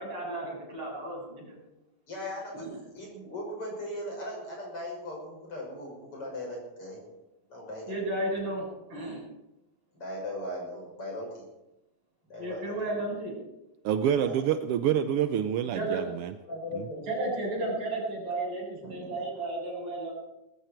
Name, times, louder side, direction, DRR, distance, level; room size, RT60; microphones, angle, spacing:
voice 1, 0.0-1.5 2.5-2.7 7.9-9.2 12.4-13.3 15.7-16.0 17.1-20.1, right 2 dB, 50° right, -3 dB, 8.9 m, -33 dB
voice 2, 2.1-7.0 7.5-8.0 9.9-11.4 12.3-12.7 14.2-14.4 16.5-17.1 18.8-19.4, left 1 dB, 45° left, -1 dB, 7.0 m, -38 dB
voice 3, 13.8-16.4 16.7-16.9, right 9 dB, 80° right, 9 dB, 1.3 m, -27 dB
19.0 x 15.0 x 4.5 m, 0.92 s
omnidirectional pair, 3.4 m